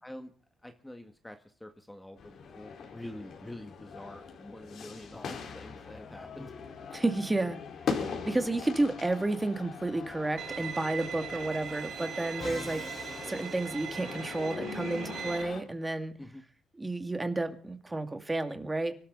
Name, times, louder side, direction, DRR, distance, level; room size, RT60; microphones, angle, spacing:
voice 1, 0.0-0.3 0.6-6.5 16.2-16.4, left 1 dB, 10° left, 6 dB, 1.8 m, -46 dB
sound 1, 2.2-15.6, left 5 dB, 65° left, 4.4 m, -41 dB
voice 2, 6.9-7.6 7.9-12.9 13.2-16.1 16.8-18.9, right 2 dB, 15° right, 7 dB, 2.4 m, -31 dB
Bowed string instrument, 10.4-15.4, right 8 dB, 65° right, 2.0 m, -40 dB
Musical instrument, 12.4-14.5, left 3 dB, 40° left, 3.7 m, -45 dB
25.0 x 13.0 x 4.1 m, 0.43 s
cardioid pair, 90°, 0 cm